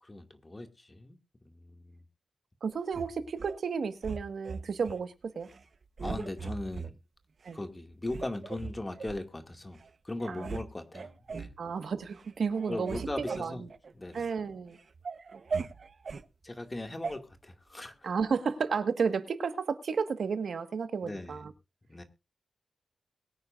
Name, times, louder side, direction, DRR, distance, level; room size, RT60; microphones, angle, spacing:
voice 1, 0.0-1.2 1.5-2.0 6.0-7.0 7.5-11.5 12.7-13.6 14.0-14.3 16.4-18.1 21.0-21.4 21.9-22.0, left 2 dB, 20° left, 2.2 m, -39 dB
voice 2, 2.6-5.5 7.4-7.6 10.3-10.5 11.6-13.5 14.1-14.8 15.3-15.4 18.0-21.5, right 5 dB, 75° right, 1.6 m, -32 dB
sound 1, 2.9-3.6 4.0-5.0 5.4-5.6 6.0-6.9 7.5-7.6 8.1-9.2 9.8-9.9 10.2-10.7 10.9-11.6 12.0-12.3 12.5-14.4 14.7-16.3 17.0-17.2, right 5 dB, 55° right, 1.0 m, -39 dB
22.0 x 9.8 x 2.5 m
wide cardioid pair, 110°, 0 cm